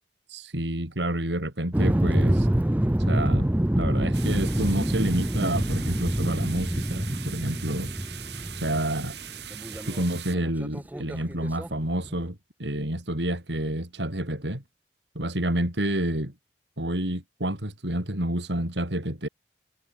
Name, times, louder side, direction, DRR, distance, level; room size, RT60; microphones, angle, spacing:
voice 1, 0.3-2.5 3.1-7.9 8.5-9.2 9.9-14.6 15.1-16.3 16.8-19.3, right 1 dB, 90° right, 6.0 m, -29 dB
sound 1, 1.7-10.0 10.4-11.7 12.1-12.3, right 1 dB, 10° right, 0.5 m, -26 dB
sound 2, 4.1-10.3, right 10 dB, 70° right, 6.9 m, -41 dB
head